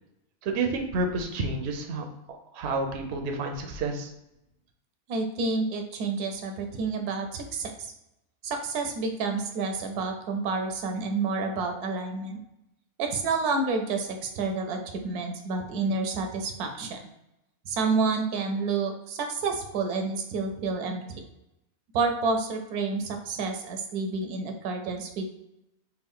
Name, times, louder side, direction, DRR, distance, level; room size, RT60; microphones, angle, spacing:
voice 1, 0.4-2.0 2.5-4.1, right 3 dB, 65° right, 3 dB, 0.7 m, -29 dB
voice 2, 5.1-7.9 8.4-12.4 13.0-17.0 17.7-21.2 21.9-25.3, right 4 dB, 85° right, 5 dB, 1.1 m, -29 dB
3.5 x 2.4 x 3.5 m, 0.87 s
omnidirectional pair, 1.6 m